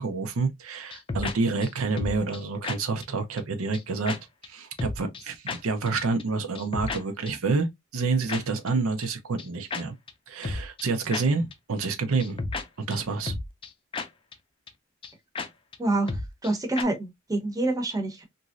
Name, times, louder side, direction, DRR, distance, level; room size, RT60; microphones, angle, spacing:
voice 1, 0.0-4.2 4.4-9.9 10.3-12.4 12.8-13.3, right 4 dB, 85° right, 0.6 m, -28 dB
sound 1, 0.9-1.3 1.6-1.7 2.0-2.4 2.6-2.8 3.0-3.1 3.4-3.5 3.7-3.8 4.1-4.2 4.4-4.5 4.8-5.2 5.5-5.6 5.9-6.0 6.2-6.3 6.5-7.0 7.3-7.4 8.3-8.4 8.7-8.8 9.0-9.1 9.4-9.5 9.7-9.8 10.1-10.2 10.4-10.8 11.1-11.2 11.5-11.6 11.8-11.9 12.2-12.6 12.9-13.0 13.3-13.7 13.9-14.1 14.3-14.4 14.7-14.8 15.0-15.1 15.3-15.5 15.7-15.8 16.1-16.5 16.8-16.9, left 3 dB, 25° left, 0.4 m, -32 dB
voice 2, 15.8-18.2, right 2 dB, 15° right, 0.8 m, -27 dB
3.0 x 2.6 x 2.4 m
head